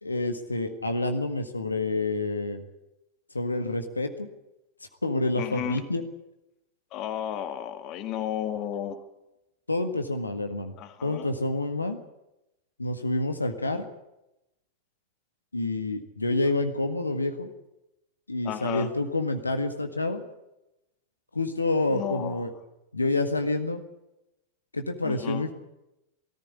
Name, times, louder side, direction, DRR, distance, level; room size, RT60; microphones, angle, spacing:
voice 1, 0.0-2.6 3.3-4.3 5.0-6.0 9.7-10.7 11.0-12.0 12.8-13.8 15.5-17.5 18.3-20.2 21.3-22.5 22.9-23.8 24.7-25.5, left 2 dB, 80° left, 6 dB, 1.7 m, -28 dB
voice 2, 5.4-5.8 6.9-9.0 10.8-11.3 18.4-18.9 21.9-22.4 25.0-25.5, left 11 dB, 40° left, 9 dB, 1.9 m, -33 dB
19.0 x 14.0 x 9.9 m, 0.91 s
figure-of-eight pair, 90°, 0 cm